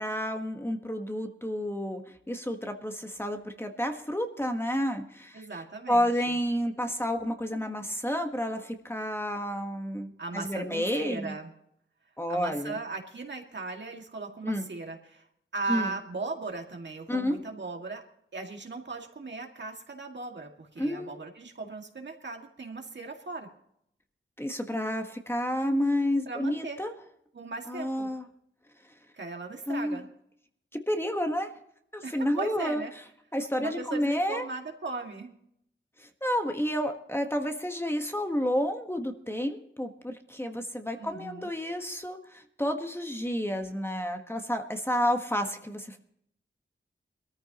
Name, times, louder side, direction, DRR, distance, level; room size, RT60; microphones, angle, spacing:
voice 1, 0.0-2.0 2.3-11.3 12.2-12.8 14.4-14.7 15.7-15.9 17.1-17.4 20.8-21.1 24.4-26.9 27.7-28.3 29.7-30.0 30.7-31.5 31.9-32.8 33.3-34.5 36.0-46.0, equal, 10° left, 5 dB, 1.3 m, -30 dB
voice 2, 5.3-6.1 10.2-11.5 12.3-15.2 15.5-18.0 18.3-23.5 26.3-26.8 27.3-28.1 29.2-30.1 32.0-32.9 33.6-35.3 41.0-41.5, right 3 dB, 60° right, 2 dB, 2.1 m, -37 dB
22.0 x 14.0 x 3.0 m, 0.73 s
wide cardioid pair, 80°, 21 cm